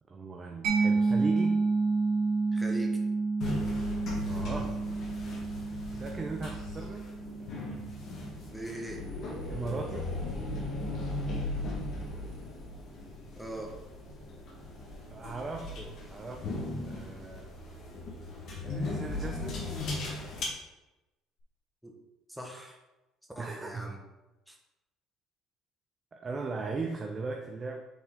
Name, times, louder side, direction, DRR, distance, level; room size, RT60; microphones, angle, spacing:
voice 1, 0.1-1.6 4.3-4.8 5.9-7.1 9.5-10.1 15.1-17.6 18.6-19.6 23.4-23.9 26.1-27.8, right 3 dB, 30° right, 2 dB, 0.7 m, -38 dB
Mallet percussion, 0.6-8.0, right 4 dB, 80° right, 1.8 m, -30 dB
voice 2, 2.5-3.0 8.5-9.0 13.4-13.7 21.8-22.0 22.3-22.8 23.3-24.0 24.5-24.6, right 1 dB, ahead, 0 dB, 1.3 m, -40 dB
sound 1, 3.4-20.4, left 2 dB, 55° left, 1.6 m, -38 dB
7.2 x 4.0 x 3.8 m, 1.0 s
cardioid pair, 105°, 0 cm